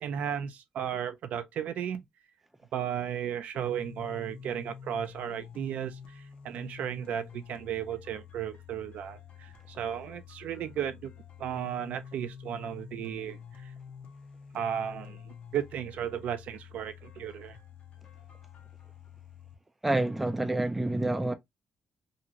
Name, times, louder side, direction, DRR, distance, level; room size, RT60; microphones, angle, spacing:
voice 1, 0.0-2.0 2.7-11.1 11.4-13.7 14.5-17.6, right 9 dB, 70° right, 0.5 m, -35 dB
sound 1, 3.5-19.6, left 7 dB, 50° left, 0.8 m, -48 dB
voice 2, 19.8-21.3, right 2 dB, 5° right, 0.4 m, -28 dB
2.7 x 2.5 x 2.8 m
cardioid pair, 145°, 3 cm